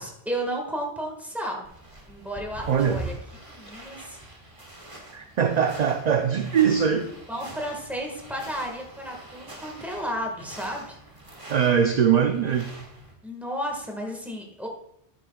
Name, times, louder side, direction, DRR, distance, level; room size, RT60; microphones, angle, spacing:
voice 1, 0.0-1.7 2.1-3.1 3.5-4.2 7.3-11.0 13.2-14.7, equal, ahead, 0 dB, 1.5 m, -33 dB
sound 1, 1.6-13.1, right 2 dB, 30° right, 1.6 m, -44 dB
voice 2, 2.7-3.0 5.1-7.1 11.5-12.7, right 7 dB, 50° right, 6 dB, 0.5 m, -22 dB
12.5 x 9.1 x 2.3 m, 0.77 s
omnidirectional pair, 1.2 m